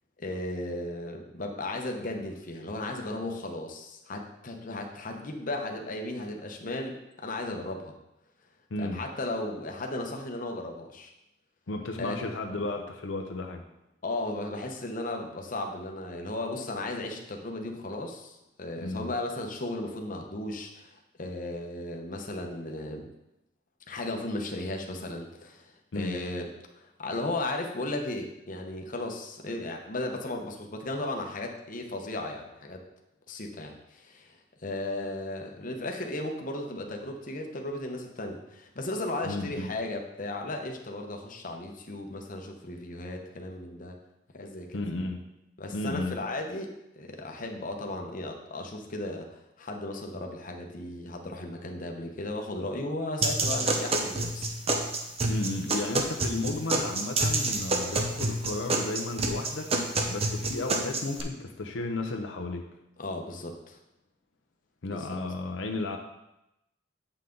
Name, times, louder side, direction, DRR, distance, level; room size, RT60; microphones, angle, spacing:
voice 1, 0.2-8.0 8.8-11.1 12.0-12.2 14.0-23.1 23.9-26.5 26.8-32.8 33.3-44.0 44.3-44.8 45.6-49.3 49.6-54.5 63.0-63.8 64.9-65.1, left 2 dB, 45° left, 3 dB, 0.9 m, -35 dB
voice 2, 8.7-9.0 11.7-13.6 18.8-19.1 25.9-26.2 39.2-39.7 44.7-45.2 45.7-46.2 55.3-62.6 64.8-66.0, left 2 dB, 75° left, 3 dB, 0.7 m, -33 dB
sound 1, 53.2-61.2, right 2 dB, 30° right, 0.8 m, -28 dB
8.1 x 5.8 x 3.8 m, 0.89 s
head